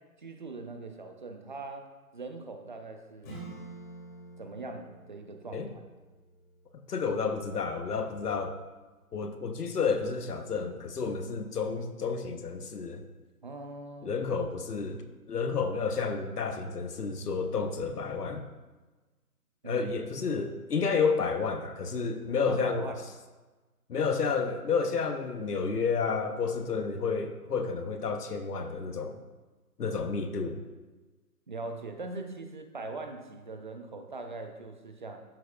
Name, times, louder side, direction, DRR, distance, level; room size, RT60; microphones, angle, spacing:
voice 1, 0.2-1.9 2.1-3.4 4.4-5.7 13.4-14.1 19.6-19.8 22.4-23.0 31.5-35.2, right 3 dB, 35° right, 5 dB, 0.5 m, -41 dB
Acoustic guitar / Strum, 3.2-8.5, right 2 dB, 30° left, 2.3 m, -49 dB
voice 2, 6.9-8.5 9.1-13.0 14.0-15.0 15.3-18.4 19.6-22.9 23.9-29.2 29.8-30.6, left 5 dB, 85° left, 7 dB, 0.9 m, -30 dB
13.0 x 4.5 x 2.2 m, 1.2 s
hypercardioid pair, 155°, 45 cm